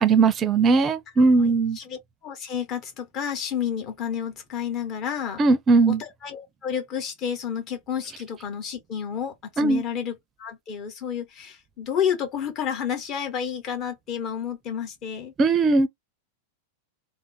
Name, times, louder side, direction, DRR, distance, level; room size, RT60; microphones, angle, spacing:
voice 1, 0.0-1.8 5.4-6.0 9.6-9.8 15.4-15.9, right 4 dB, 25° right, 0.5 m, -19 dB
voice 2, 1.2-5.4 5.8-15.3, left 8 dB, 40° left, 1.0 m, -31 dB
3.4 x 2.2 x 2.7 m
figure-of-eight pair, 90°, 0 cm